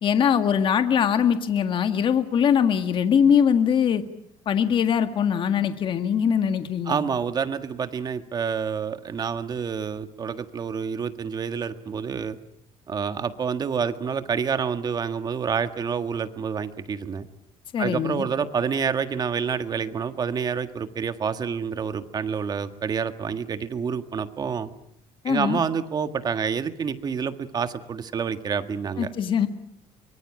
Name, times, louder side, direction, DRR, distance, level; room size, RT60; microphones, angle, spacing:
voice 1, 0.0-4.0 4.5-7.0 17.7-18.2 25.2-25.6 29.0-29.5, left 8 dB, 45° left, 8 dB, 1.9 m, -22 dB
voice 2, 6.8-12.4 12.9-17.3 17.8-24.7 25.2-29.1, right 6 dB, 35° right, 9 dB, 1.7 m, -28 dB
23.5 x 23.5 x 8.8 m, 0.72 s
cardioid pair, 130°, 12 cm